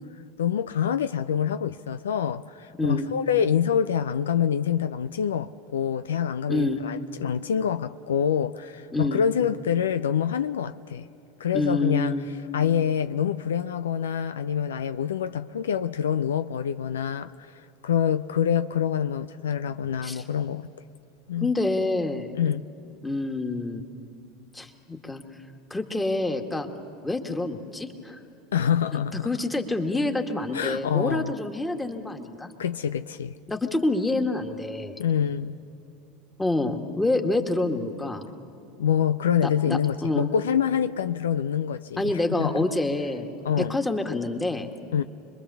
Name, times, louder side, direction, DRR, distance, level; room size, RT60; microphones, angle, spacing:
voice 1, 0.4-11.1 11.4-12.1 12.5-20.7 21.3-21.5 22.3-22.7 28.5-29.3 30.5-31.3 32.6-33.3 35.0-35.6 38.8-42.6 43.4-43.7 44.9-45.0, left 8 dB, 80° left, 0.5 m, -26 dB
voice 2, 6.5-6.8 8.9-9.2 11.5-12.3 20.0-20.2 21.4-22.3 23.0-23.8 24.5-25.2 25.7-26.7 27.0-28.2 28.9-32.5 33.5-35.0 36.4-38.3 39.4-40.3 42.0-43.3 43.6-44.7, left 2 dB, 10° left, 2.0 m, -27 dB
26.0 x 22.0 x 7.0 m
hypercardioid pair, 80°, 0 cm